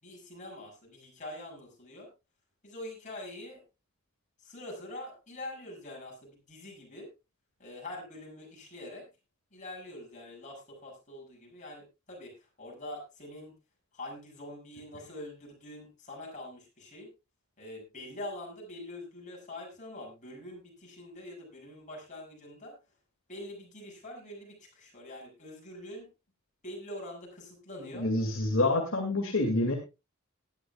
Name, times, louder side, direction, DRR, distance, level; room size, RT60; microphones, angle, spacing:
voice 1, 0.0-2.1 2.6-3.6 4.4-7.1 7.6-9.1 9.5-13.5 13.9-17.1 17.6-22.7 23.3-26.1 26.6-28.1, left 1 dB, 35° left, -1 dB, 7.2 m, -44 dB
voice 2, 28.0-29.8, left 2 dB, 65° left, 2 dB, 2.4 m, -27 dB
19.0 x 12.0 x 2.4 m, 0.27 s
head